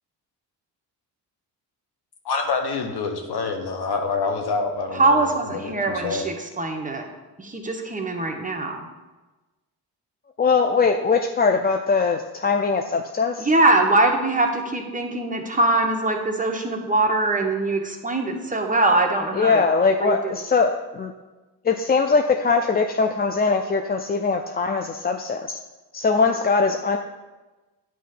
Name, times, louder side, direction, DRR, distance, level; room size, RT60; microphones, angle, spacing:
voice 1, 2.2-6.2, left 4 dB, 70° left, 5 dB, 1.1 m, -27 dB
voice 2, 4.9-7.1 7.4-8.9 13.4-19.6 20.0-20.4, right 2 dB, 20° right, 3 dB, 1.0 m, -22 dB
voice 3, 10.4-13.5 19.3-21.1 21.6-25.6 25.9-27.0, left 4 dB, 25° left, 5 dB, 0.4 m, -21 dB
9.2 x 3.1 x 5.8 m, 1.2 s
cardioid pair, 85°, 41 cm